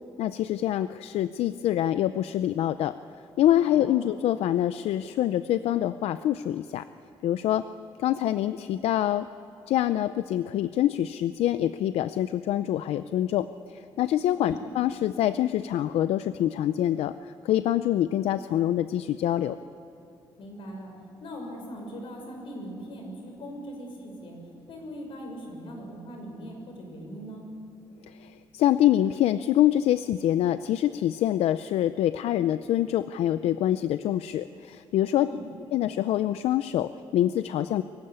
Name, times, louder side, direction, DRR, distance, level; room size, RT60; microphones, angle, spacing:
voice 1, 0.2-3.0 3.4-6.9 7.2-7.7 8.0-9.3 9.7-19.6 28.1-35.3 35.7-37.8, left 12 dB, 85° left, 12 dB, 0.5 m, -25 dB
voice 2, 3.7-4.1 14.4-14.7 20.4-20.9 21.2-24.4 24.7-27.5 35.2-35.4, equal, 60° left, 2 dB, 6.1 m, -40 dB
23.5 x 15.5 x 9.8 m, 3.0 s
cardioid pair, 170°, 10 cm